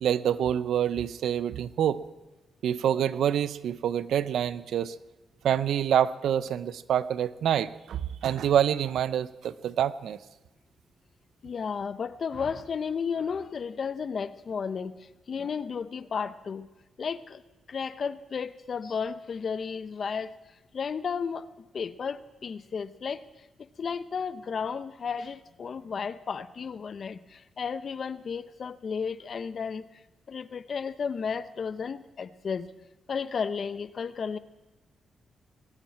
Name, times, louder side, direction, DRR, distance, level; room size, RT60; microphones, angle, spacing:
voice 1, 0.0-2.0 2.6-4.9 5.4-10.2, right 9 dB, 85° right, 16 dB, 0.6 m, -26 dB
voice 2, 11.4-15.0 15.3-16.7 17.0-17.4 17.7-20.3 20.7-21.4 21.7-23.2 23.8-29.8 30.3-32.7 33.1-34.4, left 6 dB, 55° left, 14 dB, 0.6 m, -33 dB
20.5 x 7.5 x 8.7 m, 1.1 s
cardioid pair, 95°, 0 cm